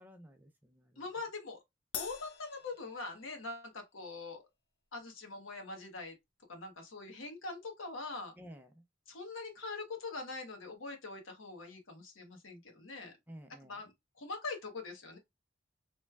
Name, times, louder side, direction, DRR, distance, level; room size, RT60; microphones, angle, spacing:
voice 1, 0.0-1.0 8.4-8.8 13.3-13.8, equal, 10° right, 0.4 m, -53 dB
voice 2, 1.0-1.6 1.9-4.4 4.9-6.2 6.5-8.3 9.1-13.1 13.7-15.2, left 3 dB, 85° left, 1.0 m, -43 dB
Crash cymbal, 1.9-3.6, left 7 dB, 60° left, 0.5 m, -45 dB
3.1 x 2.2 x 3.3 m
head